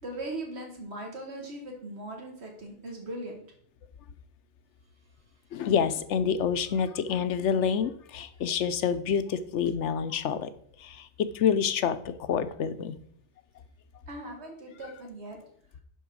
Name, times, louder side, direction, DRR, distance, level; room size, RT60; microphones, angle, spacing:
voice 1, 0.0-3.4 14.1-15.4, right 1 dB, 70° right, 1 dB, 2.2 m, -39 dB
voice 2, 5.5-10.5 10.8-13.0, left 7 dB, 85° left, 12 dB, 1.0 m, -27 dB
10.5 x 3.9 x 6.1 m, 0.64 s
omnidirectional pair, 1.2 m